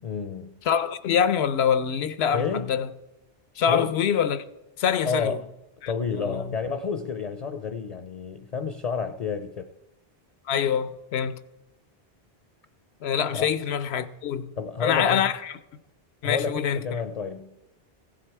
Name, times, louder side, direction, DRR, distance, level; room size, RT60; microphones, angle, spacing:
voice 1, 0.0-0.5 2.3-2.7 3.7-3.9 5.0-5.5 5.9-9.7 13.3-13.5 14.6-15.3 16.2-17.5, left 5 dB, 50° left, 0.5 m, -30 dB
voice 2, 0.6-2.9 3.6-4.4 4.8-5.4 5.8-6.5 10.5-11.3 13.0-14.5 14.8-15.6 16.2-16.8, left 8 dB, 85° left, 0.9 m, -25 dB
15.0 x 7.5 x 4.6 m
omnidirectional pair, 1.0 m